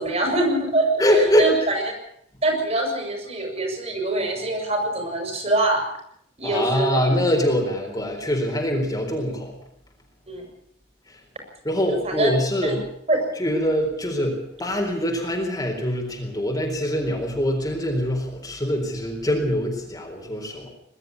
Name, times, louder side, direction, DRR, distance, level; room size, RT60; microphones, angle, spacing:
voice 1, 0.0-1.9 2.4-5.8 6.4-7.1 10.3-10.4 11.9-12.3 12.6-12.8 13.1-13.3, right 2 dB, 35° right, 3 dB, 6.1 m, -24 dB
voice 2, 1.0-1.5 6.4-9.5 11.6-12.8 13.4-20.7, equal, 20° left, 0 dB, 4.3 m, -23 dB
21.5 x 12.5 x 9.6 m, 0.72 s
head